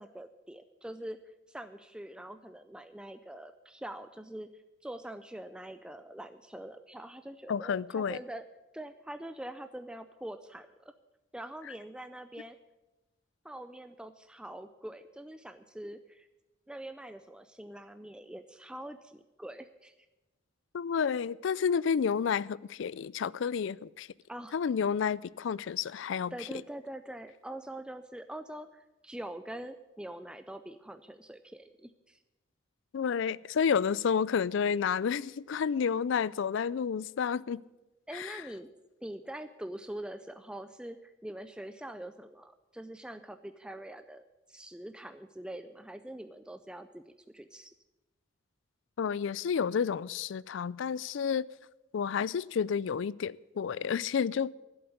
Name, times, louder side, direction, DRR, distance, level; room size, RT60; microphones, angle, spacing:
voice 1, 0.0-8.4 8.7-10.9 11.3-12.6 13.4-16.3 16.7-19.9 24.3-24.6 26.3-32.2 38.1-38.7 39.0-44.2 44.5-47.0 47.3-47.7, right 1 dB, 5° right, 0.4 m, -44 dB
voice 2, 7.5-8.2 20.7-24.1 24.5-26.3 32.9-37.6 38.1-38.4 49.0-51.5 51.9-54.5, left 6 dB, 65° left, 0.3 m, -30 dB
11.5 x 7.9 x 9.3 m
head